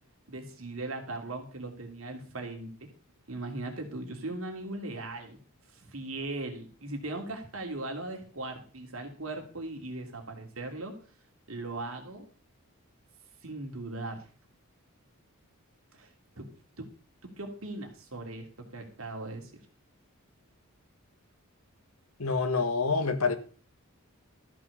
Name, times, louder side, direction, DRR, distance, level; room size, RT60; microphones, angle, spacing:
voice 1, 0.3-2.9 3.3-5.4 5.7-10.9 11.5-12.3 13.4-14.2 15.9-16.1 16.4-16.5 16.8-16.9 17.2-19.6, right 2 dB, 65° right, 2.8 m, -39 dB
voice 2, 22.2-23.4, left 4 dB, 75° left, 1.4 m, -27 dB
13.5 x 6.2 x 6.7 m
head